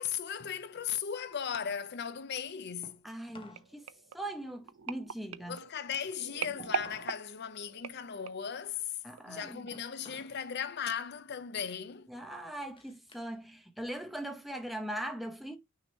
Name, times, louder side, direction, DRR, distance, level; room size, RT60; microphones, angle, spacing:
voice 1, 0.0-3.0 5.5-8.8 9.3-12.1, left 7 dB, 50° left, 0.5 m, -37 dB
sound 1, 0.7-3.7 4.0-7.2 7.6-10.5 10.8-11.2 11.7-13.4 13.8-14.9, left 2 dB, 25° left, 1.0 m, -57 dB
voice 2, 3.0-3.9 4.1-5.6 9.0-9.7 12.1-15.6, right 1 dB, ahead, 0.8 m, -40 dB
sound 2, 3.6-8.6 9.2-9.4 9.7-9.8, right 7 dB, 80° right, 0.6 m, -41 dB
6.3 x 2.9 x 5.3 m
head